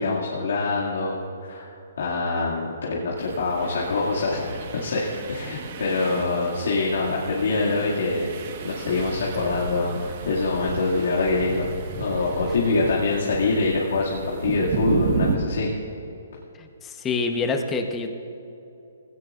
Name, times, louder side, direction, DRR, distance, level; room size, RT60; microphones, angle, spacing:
voice 1, 0.0-1.7 2.0-11.7 12.0-15.7, left 3 dB, 70° left, -5 dB, 2.3 m, -25 dB
sound 1, 3.2-15.4, right 5 dB, 45° right, 1.4 m, -33 dB
voice 2, 16.6-18.1, left 4 dB, 15° left, 4 dB, 1.0 m, -26 dB
19.5 x 17.0 x 2.5 m, 2.9 s
hypercardioid pair, 150°, 0 cm